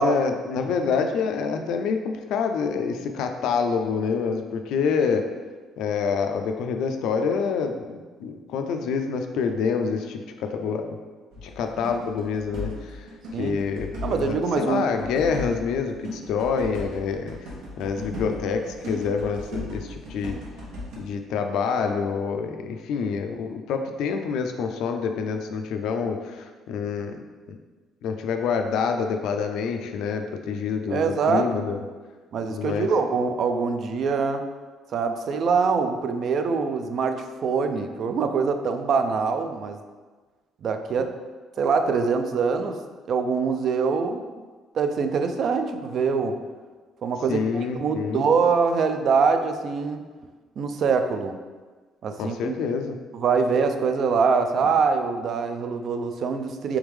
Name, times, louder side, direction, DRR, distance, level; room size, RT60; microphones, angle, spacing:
voice 1, 0.0-5.3 5.8-11.0 11.4-13.1 13.4-17.4 17.8-20.3 21.0-27.2 27.5-27.6 28.0-31.8 32.5-32.9 47.3-48.2 52.2-53.0, left 5 dB, 75° left, 5 dB, 0.4 m, -27 dB
sound 1, 11.3-21.0, left 1 dB, 85° right, 0.9 m, -37 dB
voice 2, 14.0-14.8 30.9-31.5 32.3-34.4 34.9-39.8 40.6-41.1 41.6-42.8 43.1-44.2 44.7-46.4 47.0-50.0 50.6-51.4 52.0-52.6 53.1-56.8, right 5 dB, 50° right, 7 dB, 0.3 m, -24 dB
3.5 x 3.4 x 3.2 m, 1.4 s
cardioid pair, 130°, 0 cm